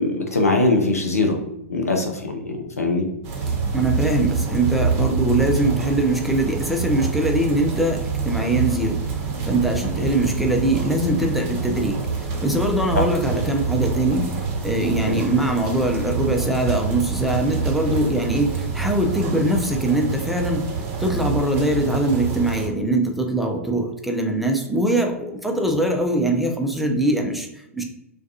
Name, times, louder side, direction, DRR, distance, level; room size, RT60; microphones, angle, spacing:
voice 1, 0.0-1.4 1.7-3.1 10.0-10.1 12.9-13.0 15.1-15.2 25.6-25.7, left 2 dB, 90° left, 3 dB, 0.5 m, -22 dB
sound 1, 3.2-22.7, right 5 dB, 35° right, 0.7 m, -26 dB
voice 2, 3.7-14.3 14.6-20.6 21.0-27.8, right 1 dB, ahead, 2 dB, 0.4 m, -22 dB
2.3 x 2.3 x 2.6 m, 0.82 s
figure-of-eight pair, 105°, 8 cm